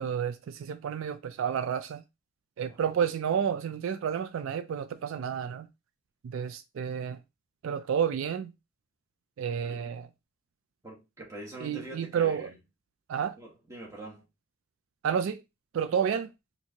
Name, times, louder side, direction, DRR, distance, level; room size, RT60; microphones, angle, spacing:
voice 1, 0.0-2.0 2.6-5.7 6.2-7.2 7.6-8.5 9.4-10.1 11.6-12.5 13.1-13.4 15.0-15.4 15.7-16.3, right 7 dB, 75° right, 0.3 m, -30 dB
voice 2, 2.7-3.0 9.7-9.8 10.8-12.6 13.4-14.2, right 1 dB, 15° right, 1.1 m, -44 dB
4.3 x 2.6 x 2.7 m
head